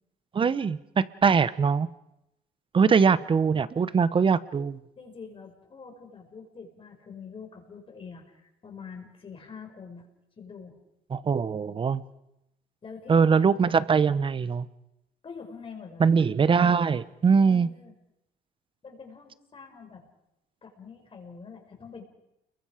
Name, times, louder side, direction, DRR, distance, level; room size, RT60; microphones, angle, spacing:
voice 1, 0.3-1.9 2.7-4.8 11.1-12.0 13.1-14.7 16.0-17.7, right 5 dB, 30° right, 16 dB, 0.9 m, -22 dB
voice 2, 5.0-10.1 10.4-10.8 12.8-13.4 15.2-16.1 17.4-17.9 18.8-20.0 20.6-22.0, left 5 dB, 30° left, 3 dB, 5.2 m, -45 dB
30.0 x 22.5 x 5.0 m, 0.86 s
cardioid pair, 110°, 17 cm